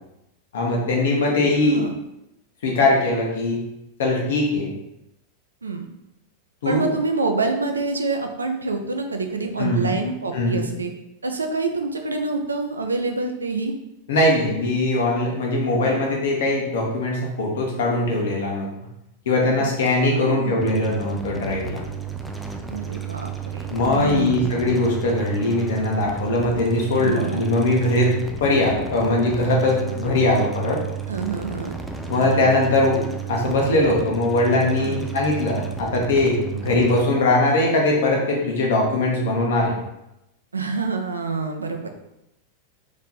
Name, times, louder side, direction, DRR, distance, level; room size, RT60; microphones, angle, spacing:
voice 1, 0.5-1.8 2.6-3.6 4.0-4.7 6.6-6.8 9.6-9.9 10.3-10.7 14.1-18.7 19.2-21.8 23.7-28.1 28.4-30.8 32.1-33.0 33.3-39.7, left 2 dB, 60° left, -1 dB, 1.1 m, -21 dB
voice 2, 1.6-1.9 5.6-5.9 6.6-10.9 11.2-13.7 20.0-20.6 22.7-24.5 27.0-27.5 31.1-31.8 34.8-35.0 40.5-41.9, right 3 dB, 75° right, 4 dB, 0.5 m, -26 dB
sound 1, 20.6-37.0, right 7 dB, 5° right, 0.4 m, -33 dB
3.4 x 3.1 x 4.1 m, 0.88 s
figure-of-eight pair, 90°, 0 cm